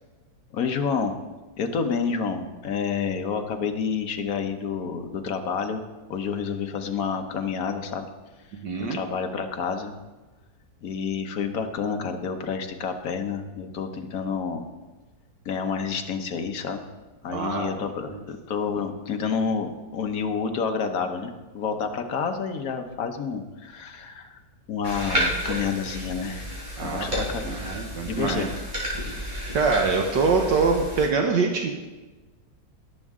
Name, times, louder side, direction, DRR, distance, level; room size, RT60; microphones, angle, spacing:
voice 1, 0.5-1.1 1.6-5.8 6.1-8.1 8.8-10.0 10.8-14.6 15.4-16.8 17.2-24.4 24.7-26.5 26.8-27.7 28.0-28.5, left 6 dB, 55° left, 5 dB, 1.3 m, -29 dB
voice 2, 8.6-9.0 17.3-17.7 18.1-18.2 26.8-27.2 27.4-28.5 29.5-31.7, right 4 dB, 70° right, 2 dB, 1.6 m, -24 dB
sound 1, 24.8-31.1, equal, 15° right, 4.4 m, -31 dB
18.0 x 7.6 x 3.7 m, 1.2 s
omnidirectional pair, 2.0 m